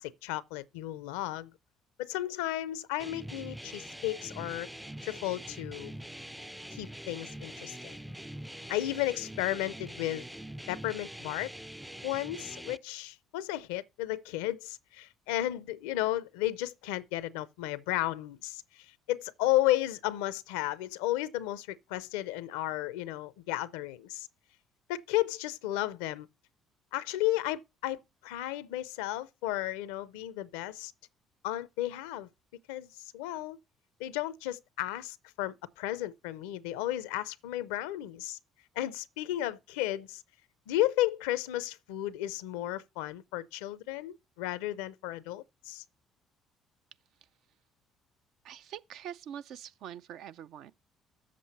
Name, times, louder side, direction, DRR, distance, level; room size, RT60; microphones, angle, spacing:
voice 1, 0.0-1.5 2.0-4.7 5.0-5.9 6.7-8.0 8.7-10.3 10.7-11.5 12.0-24.3 24.9-26.3 26.9-30.9 31.4-32.3 32.7-33.6 34.0-38.4 38.8-40.2 40.7-45.8, left 15 dB, 85° left, 0.5 m, -33 dB
sound 1, 3.0-12.8, right 1 dB, 5° right, 0.3 m, -44 dB
voice 2, 48.4-50.7, right 10 dB, 70° right, 0.4 m, -44 dB
7.5 x 7.3 x 4.0 m
hypercardioid pair, 55°, 0 cm